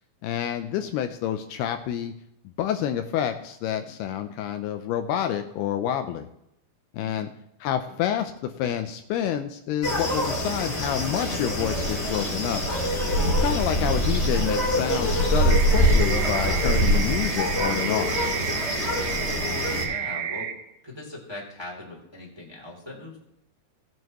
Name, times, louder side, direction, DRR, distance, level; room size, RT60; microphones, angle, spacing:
voice 1, 0.2-2.1 2.6-6.3 6.9-7.3 7.6-12.6 13.4-18.3, left 10 dB, 80° left, 7 dB, 2.5 m, -28 dB
voice 2, 7.0-7.3 19.3-20.5 20.8-23.2, left 1 dB, 10° right, -3 dB, 2.3 m, -40 dB
sound 1, 9.8-19.8, equal, 20° left, 1.8 m, -24 dB
sound 2, 15.5-20.5, right 8 dB, 70° right, 2.1 m, -31 dB
17.5 x 9.3 x 3.0 m, 0.80 s
omnidirectional pair, 4.8 m